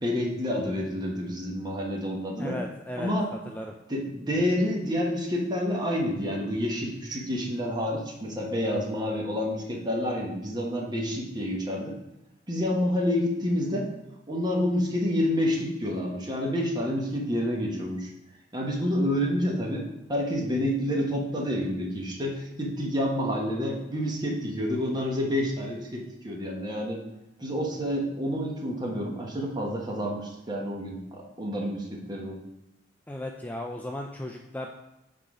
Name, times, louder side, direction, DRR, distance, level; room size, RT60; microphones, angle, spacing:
voice 1, 0.0-2.6 3.0-3.3 3.9-12.0 12.5-13.9 14.3-18.1 18.5-27.0 27.4-32.4, equal, 25° right, -2 dB, 1.1 m, -28 dB
voice 2, 2.4-3.1 3.5-3.7 33.1-34.7, left 1 dB, 10° left, 2 dB, 0.3 m, -36 dB
5.7 x 3.9 x 4.8 m, 0.95 s
head